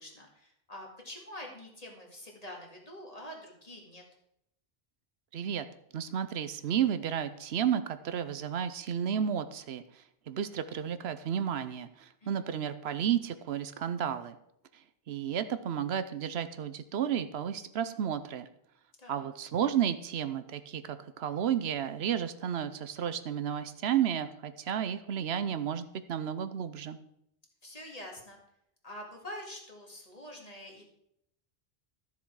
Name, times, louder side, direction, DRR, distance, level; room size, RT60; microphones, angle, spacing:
voice 1, 0.0-4.0 12.2-12.5 19.0-19.3 27.6-28.4 28.8-30.8, left 1 dB, 35° left, 0 dB, 2.2 m, -46 dB
voice 2, 5.3-5.7 5.9-14.4 15.1-18.5 19.1-27.0, right 9 dB, 75° right, 11 dB, 0.9 m, -32 dB
12.5 x 7.1 x 4.7 m, 0.77 s
omnidirectional pair, 1.1 m